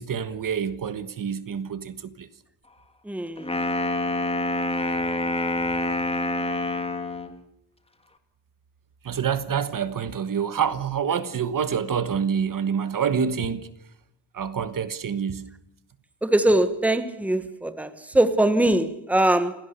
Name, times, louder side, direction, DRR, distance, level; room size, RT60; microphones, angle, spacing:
voice 1, 0.0-2.3 9.0-13.7 14.3-15.5, right 7 dB, 45° right, 1.4 m, -27 dB
voice 2, 3.1-3.5 16.2-17.9 18.1-19.5, right 1 dB, 5° right, 1.4 m, -21 dB
Wind instrument woodwind instrument, 3.4-7.3, left 1 dB, 15° left, 2.0 m, -26 dB
28.5 x 17.5 x 6.9 m
wide cardioid pair, 165°, 44 cm